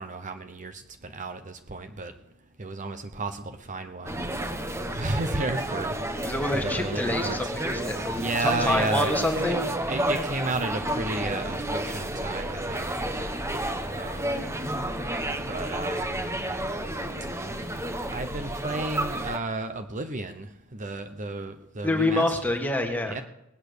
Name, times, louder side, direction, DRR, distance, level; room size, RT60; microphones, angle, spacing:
voice 1, 0.0-2.1 2.6-4.2 4.9-6.0 6.5-7.5 8.1-9.6 9.9-13.0 13.5-13.6 13.9-14.4 15.5-16.2 18.1-20.5 20.7-22.6 23.1-23.2, right 2 dB, 35° right, 7 dB, 0.9 m, -33 dB
sound 1, 4.1-19.4, right 1 dB, 15° right, 1.0 m, -31 dB
voice 2, 6.2-9.6 21.8-23.2, left 2 dB, 10° left, 4 dB, 1.7 m, -27 dB
20.0 x 8.7 x 6.7 m, 0.84 s
head